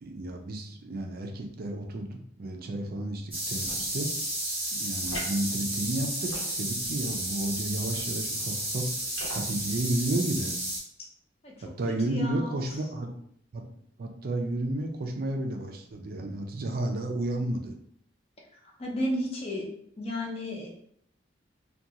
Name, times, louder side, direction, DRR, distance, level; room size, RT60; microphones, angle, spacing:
voice 1, 0.0-4.1 4.8-8.9 9.3-10.5 11.6-13.2 13.5-13.7 14.0-17.7, right 1 dB, 50° right, 3 dB, 0.4 m, -32 dB
sound 1, 3.3-10.8, right 1 dB, 10° right, 1.0 m, -32 dB
sound 2, 3.5-3.9 5.0-5.4 6.2-6.9 7.8-8.1 9.1-9.4, equal, 75° left, 1.2 m, -41 dB
voice 2, 12.1-12.6 18.8-19.7 20.0-20.7, equal, 30° left, -1 dB, 0.5 m, -32 dB
2.4 x 2.3 x 2.7 m, 0.67 s
head